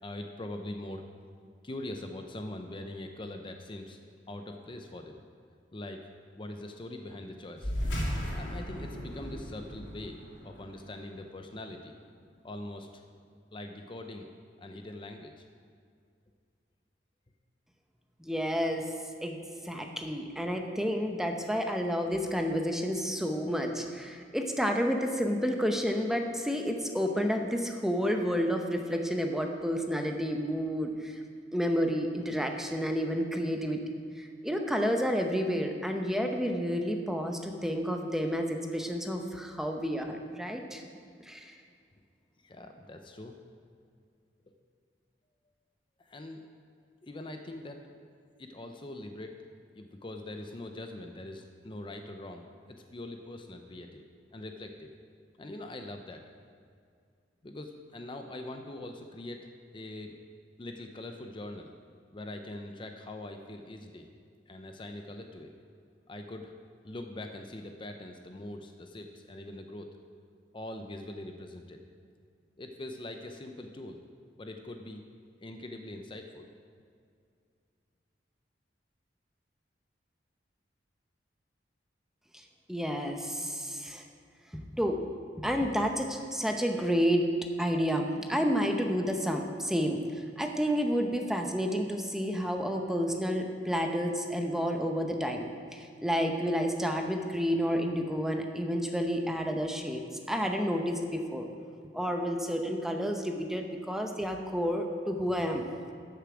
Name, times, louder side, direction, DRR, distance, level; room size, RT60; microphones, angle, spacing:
voice 1, 0.0-1.0 1.6-4.0 4.3-5.2 5.7-7.7 8.3-10.2 10.4-11.9 12.4-13.0 13.5-14.3 14.6-15.4 42.4-43.4 46.0-46.4 47.0-48.0 48.4-49.4 49.7-54.0 54.3-54.9 55.4-56.2 57.4-59.5 59.7-60.2 60.6-61.7 62.1-64.1 64.5-65.5 66.1-66.5 66.8-69.9 70.5-71.8 72.6-74.0 74.4-75.0 75.4-76.5, left 1 dB, 30° left, 5 dB, 0.6 m, -42 dB
sound 1, 7.6-12.5, equal, 85° left, 3.0 m, -37 dB
voice 2, 18.2-18.9 19.2-19.4 19.6-31.2 31.5-33.8 34.2-40.8 41.2-41.6 82.3-82.4 82.7-84.0 84.5-85.0 85.4-87.3 87.6-90.0 90.4-95.5 95.7-100.0 100.3-101.5 101.9-105.7, equal, 5° right, 3 dB, 0.7 m, -30 dB
13.5 x 6.8 x 4.9 m, 2.3 s
head